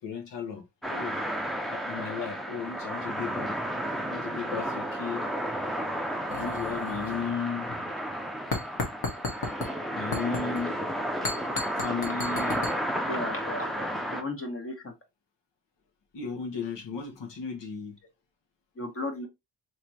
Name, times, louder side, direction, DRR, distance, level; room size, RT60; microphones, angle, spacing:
voice 1, 0.0-1.2 1.7-3.5 4.1-5.3 6.3-7.7 9.9-10.8 11.8-12.6 16.1-18.0, left 6 dB, 75° left, 1.2 m, -35 dB
sound 1, 0.8-14.2, equal, ahead, 0.5 m, -32 dB
sound 2, 6.3-7.4 7.7-7.9 8.5-9.7 10.1-10.6 11.2-12.7, left 3 dB, 60° left, 1.3 m, -34 dB
voice 2, 13.1-14.9 18.8-19.3, left 2 dB, 30° left, 1.1 m, -35 dB
3.3 x 3.0 x 2.9 m
wide cardioid pair, 120°, 43 cm